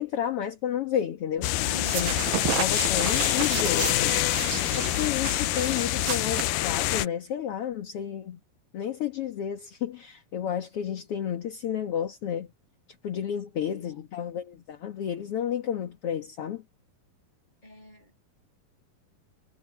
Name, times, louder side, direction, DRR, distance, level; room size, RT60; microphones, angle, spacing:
voice 1, 0.0-1.5 1.9-2.2 2.5-4.2 4.7-8.4 8.7-12.5 13.0-16.6, left 9 dB, 50° left, 1.9 m, -31 dB
sound 1, 1.4-7.1, left 16 dB, 75° left, 2.1 m, -26 dB
voice 2, 1.6-2.2 17.6-18.2, equal, 10° left, 6.6 m, -44 dB
sound 2, 1.7-7.1, right 14 dB, 80° right, 2.7 m, -33 dB
omnidirectional pair, 4.1 m